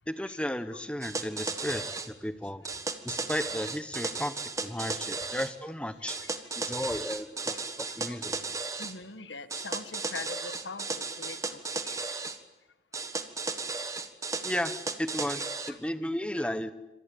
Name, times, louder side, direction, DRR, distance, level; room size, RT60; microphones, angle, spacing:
voice 1, 0.1-2.6 3.0-6.2 6.6-8.4 14.4-14.7 15.0-16.7, left 1 dB, 5° left, 11 dB, 1.2 m, -34 dB
sound 1, 1.0-2.1 2.6-5.5 6.1-8.9 9.5-12.4 12.9-15.7, right 3 dB, 20° right, 1.5 m, -35 dB
voice 2, 1.5-2.0 2.6-2.8 4.8-5.3 6.0-6.3 6.8-7.0 7.5-8.2 8.8-12.1 15.4-15.8 16.4-16.5, left 4 dB, 85° left, 11 dB, 1.6 m, -45 dB
26.5 x 25.5 x 8.6 m, 1.0 s
head